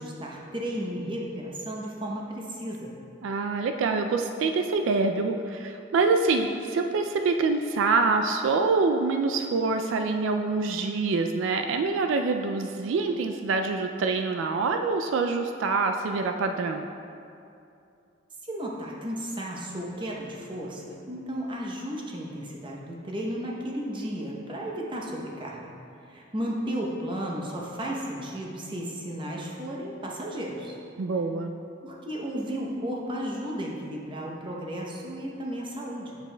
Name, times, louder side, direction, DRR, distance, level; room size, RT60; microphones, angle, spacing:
voice 1, 0.0-2.9 18.4-25.7 26.0-30.8 31.8-36.2, equal, 25° right, -2 dB, 0.8 m, -34 dB
voice 2, 3.2-16.9 31.0-31.5, right 4 dB, 75° right, 5 dB, 0.3 m, -25 dB
7.3 x 7.3 x 2.2 m, 2.6 s
head